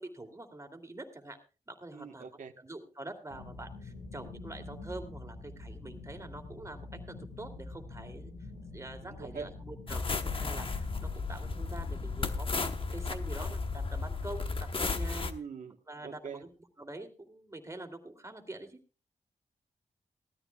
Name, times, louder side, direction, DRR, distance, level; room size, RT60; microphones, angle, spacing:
voice 1, 0.0-1.4 1.7-2.3 2.6-8.3 8.7-12.6 12.9-15.3 15.9-16.5 16.8-18.8, right 2 dB, 20° right, 2.8 m, -45 dB
voice 2, 1.9-2.5 9.0-9.5 15.1-15.8 16.0-16.4, right 6 dB, 75° right, 1.3 m, -43 dB
sound 1, 3.3-12.3, left 2 dB, 85° left, 5.1 m, -46 dB
sound 2, 9.9-15.3, left 4 dB, 45° left, 1.0 m, -34 dB
18.5 x 13.5 x 2.3 m
cardioid pair, 70°, 13 cm